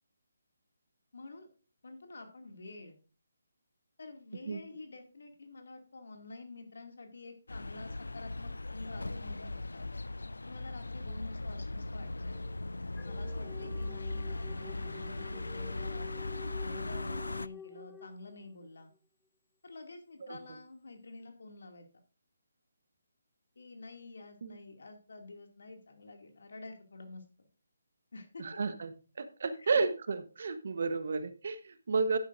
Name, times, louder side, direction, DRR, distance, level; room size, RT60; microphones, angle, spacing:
voice 1, 1.1-1.5 1.8-3.0 4.0-9.9 10.4-12.4 13.0-16.3 16.6-18.9 19.6-21.9 23.6-27.5 28.1-28.4 29.5-29.7, left 2 dB, 70° left, 4 dB, 2.3 m, -49 dB
sound 1, 7.5-17.5, left 2 dB, 90° left, 0.3 m, -39 dB
sound 2, 12.3-18.7, left 7 dB, 10° left, 0.5 m, -50 dB
voice 2, 28.4-28.9 29.2-32.2, right 4 dB, 60° right, 11 dB, 1.0 m, -32 dB
11.0 x 9.6 x 2.6 m, 0.34 s
figure-of-eight pair, 150°, 0 cm